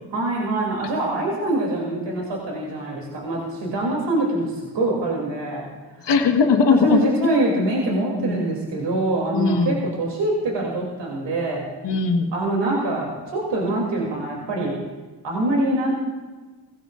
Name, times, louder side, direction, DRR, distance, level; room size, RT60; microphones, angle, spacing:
voice 1, 0.1-5.6 6.0-6.1 6.7-11.7 12.3-14.8 15.2-15.9, right 2 dB, 75° right, -2 dB, 3.0 m, -24 dB
voice 2, 6.0-7.0 8.2-8.5 9.3-9.9 11.8-12.3, left 5 dB, 75° left, 4 dB, 1.6 m, -19 dB
17.5 x 16.0 x 2.5 m, 1.3 s
supercardioid pair, 45°, 43 cm